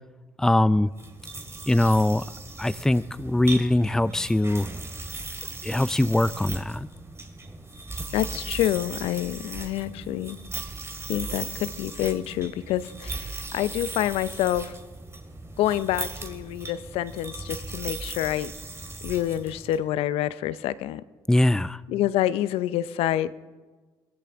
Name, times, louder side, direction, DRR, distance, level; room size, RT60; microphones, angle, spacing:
voice 1, 0.4-0.9 1.7-2.3 2.6-4.7 5.6-6.9 21.3-21.8, left 1 dB, 5° left, 0.4 m, -22 dB
sound 1, 0.9-19.8, right 3 dB, 25° right, 2.3 m, -38 dB
voice 2, 8.1-10.4 11.1-14.7 15.6-18.5 19.0-21.0 21.9-23.3, left 12 dB, 75° left, 0.6 m, -27 dB
22.5 x 16.5 x 3.6 m
hypercardioid pair, 60°, 10 cm